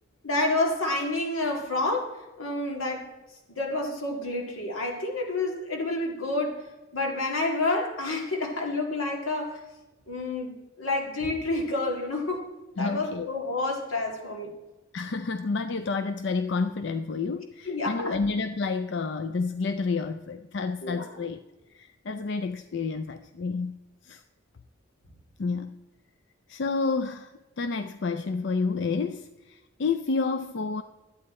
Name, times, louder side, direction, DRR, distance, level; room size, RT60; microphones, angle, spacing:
voice 1, 0.2-3.1 3.5-6.7 6.9-9.6 10.1-12.4 12.8-14.5 17.6-18.2 20.8-21.0, left 2 dB, 90° left, 2.1 m, -29 dB
voice 2, 12.8-13.3 14.9-21.4 21.7-23.8 24.0-24.2 25.4-25.8 26.5-30.8, left 4 dB, 60° left, 0.4 m, -30 dB
12.5 x 8.7 x 4.3 m
head